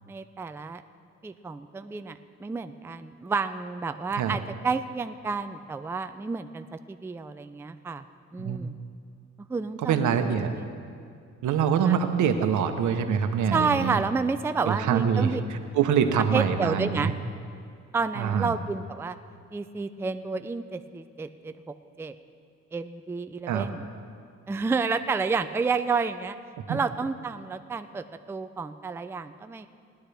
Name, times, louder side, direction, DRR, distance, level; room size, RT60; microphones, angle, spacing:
voice 1, 0.1-0.8 1.2-8.0 8.3-8.7 9.5-10.8 11.9-12.0 13.5-15.4 16.3-17.1 17.9-19.2 19.5-21.5 22.0-22.1 22.7-23.8 24.5-26.4 26.7-29.7, right 4 dB, 10° right, 9 dB, 0.4 m, -30 dB
voice 2, 9.8-10.5 11.4-13.9 14.6-15.3 15.7-17.2 18.2-18.5 23.5-23.7 26.7-26.8, right 7 dB, 80° right, 7 dB, 1.0 m, -24 dB
19.5 x 10.5 x 3.4 m, 2.3 s
cardioid pair, 90°, 30 cm